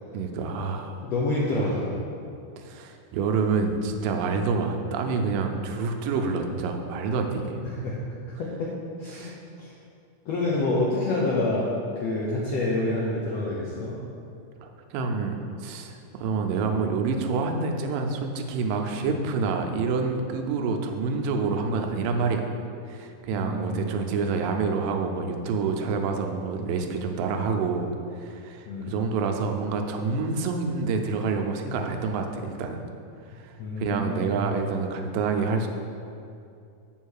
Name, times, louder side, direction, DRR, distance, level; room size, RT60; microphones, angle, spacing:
voice 1, 0.1-1.0 2.6-7.6 9.1-9.4 14.6-22.5 22.9-32.8 33.3-35.7, right 4 dB, 85° right, 4 dB, 2.3 m, -27 dB
voice 2, 1.0-1.9 7.6-8.0 8.4-8.7 9.0-9.3 9.6-9.7 10.3-11.7 12.0-14.0 19.0-19.1 23.3-23.9 27.3-27.4 28.7-28.9 33.6-34.4, left 2 dB, 80° left, -5 dB, 1.4 m, -27 dB
7.1 x 3.7 x 6.4 m, 2.5 s
omnidirectional pair, 3.8 m